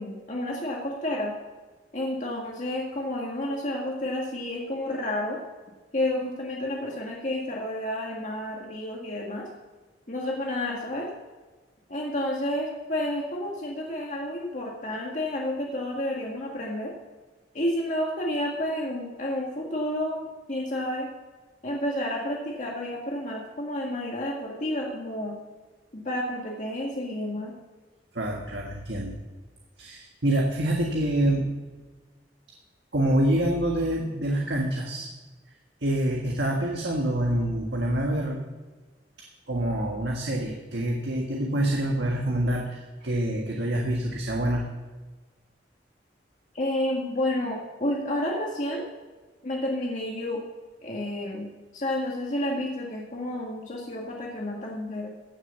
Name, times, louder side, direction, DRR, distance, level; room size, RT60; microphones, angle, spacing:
voice 1, 0.0-1.3 1.9-5.4 5.9-9.5 10.1-11.1 11.9-16.9 17.5-21.1 21.6-25.4 25.9-27.5 46.5-48.8 49.4-50.4 50.8-51.5 51.7-55.1, left 1 dB, 45° left, -2 dB, 1.8 m, -30 dB
voice 2, 28.1-29.2 29.8-31.6 32.9-35.1 35.8-38.4 39.2-44.7, right 1 dB, 75° right, 0 dB, 1.6 m, -26 dB
16.0 x 6.4 x 7.0 m, 1.3 s
head